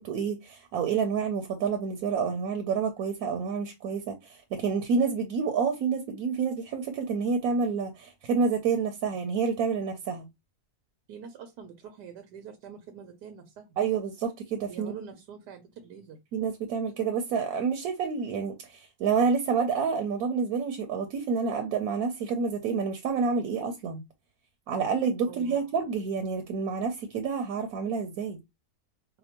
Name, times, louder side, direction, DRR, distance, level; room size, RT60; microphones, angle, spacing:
voice 1, 0.0-10.3 13.8-14.9 16.3-24.0 24.7-28.4, right 5 dB, 70° right, 1.1 m, -28 dB
voice 2, 11.1-13.7 14.7-16.2 25.2-25.6, right 7 dB, 90° right, 1.3 m, -45 dB
5.0 x 2.2 x 2.9 m
omnidirectional pair, 1.7 m